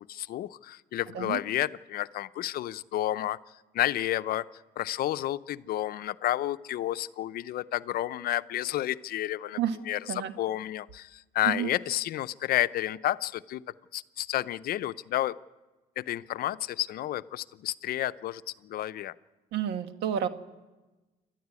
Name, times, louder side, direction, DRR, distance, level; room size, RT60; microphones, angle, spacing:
voice 1, 0.0-3.4 3.7-4.5 4.8-13.6 13.9-15.4 16.0-19.1, left 13 dB, 65° left, 14 dB, 0.6 m, -31 dB
voice 2, 19.5-20.3, right 9 dB, 85° right, 9 dB, 1.4 m, -30 dB
28.0 x 12.5 x 9.6 m, 1.2 s
cardioid pair, 110°, 17 cm